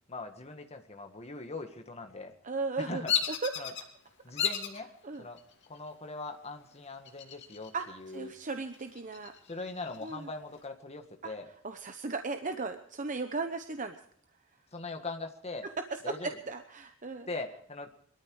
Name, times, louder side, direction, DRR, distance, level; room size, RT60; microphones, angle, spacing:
voice 1, 0.1-2.3 2.8-3.1 3.6-3.7 4.2-4.9 5.2-5.4 5.7-8.3 9.4-11.5 14.7-15.7 16.0-16.4 17.3-17.9, left 3 dB, 30° left, 5 dB, 1.8 m, -41 dB
voice 2, 2.4-3.0 3.4-3.8 5.0-5.2 7.7-9.3 10.0-10.3 11.2-11.3 11.6-14.0 15.6-17.3, right 3 dB, 40° right, 7 dB, 0.9 m, -36 dB
Bird vocalization bird call bird song, 3.1-3.8 4.4-4.8 5.4-5.9 7.1-7.8 8.2-8.3 8.7-10.1, left 8 dB, 60° left, 2.6 m, -33 dB
22.5 x 13.0 x 4.8 m, 0.64 s
head